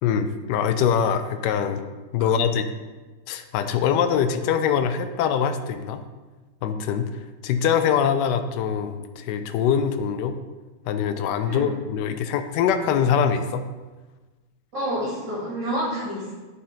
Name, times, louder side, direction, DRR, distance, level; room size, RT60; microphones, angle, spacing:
voice 1, 0.0-1.8 2.1-2.7 3.3-6.0 6.6-7.1 7.4-10.4 10.9-13.7, left 7 dB, 75° left, 9 dB, 1.0 m, -23 dB
voice 2, 11.4-11.7 14.7-16.3, right 1 dB, 60° right, -7 dB, 3.2 m, -29 dB
9.4 x 4.2 x 3.7 m, 1.2 s
omnidirectional pair, 2.2 m